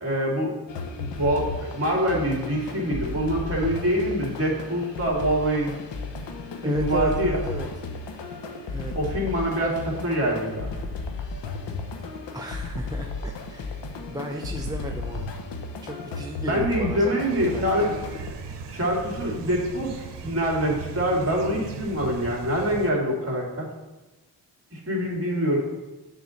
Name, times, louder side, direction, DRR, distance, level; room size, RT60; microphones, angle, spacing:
voice 1, 0.0-0.5 1.0-5.7 6.6-7.4 8.9-10.7 16.4-17.9 18.7-23.6 24.7-25.6, equal, 35° right, -1 dB, 2.6 m, -25 dB
sound 1, 0.7-18.3, left 3 dB, 80° left, 1.1 m, -34 dB
voice 2, 6.6-7.7 8.7-8.9 11.4-11.5 12.3-13.8 14.1-15.3 15.8-17.9, right 1 dB, 10° right, 0 dB, 0.6 m, -35 dB
sound 2, 17.3-22.9, right 6 dB, 75° right, 1.0 m, -38 dB
7.7 x 4.0 x 6.5 m, 1.2 s
cardioid pair, 75°, 42 cm